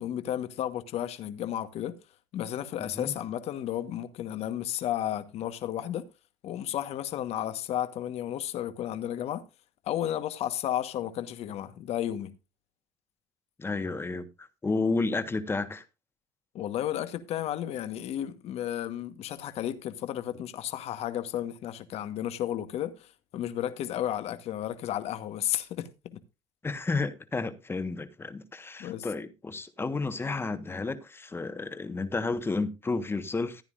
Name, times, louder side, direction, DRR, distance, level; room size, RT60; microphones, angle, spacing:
voice 1, 0.0-2.0 2.3-6.0 6.4-9.4 9.9-12.3 16.5-26.2 28.8-29.1, left 11 dB, 60° left, 1.4 m, -33 dB
voice 2, 2.8-3.1 13.6-15.8 26.6-33.6, left 3 dB, 20° left, 1.4 m, -31 dB
15.0 x 9.6 x 2.6 m
supercardioid pair, 95°, 12 cm